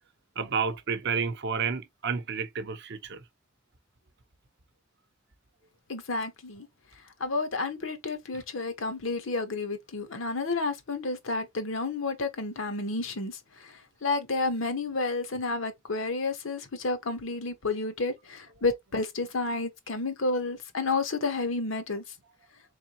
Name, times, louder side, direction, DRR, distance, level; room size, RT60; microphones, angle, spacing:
voice 1, 0.4-3.2, right 5 dB, 60° right, 0.7 m, -30 dB
voice 2, 5.9-6.7 7.2-22.0, left 3 dB, 80° left, 1.1 m, -31 dB
3.8 x 3.4 x 2.8 m
head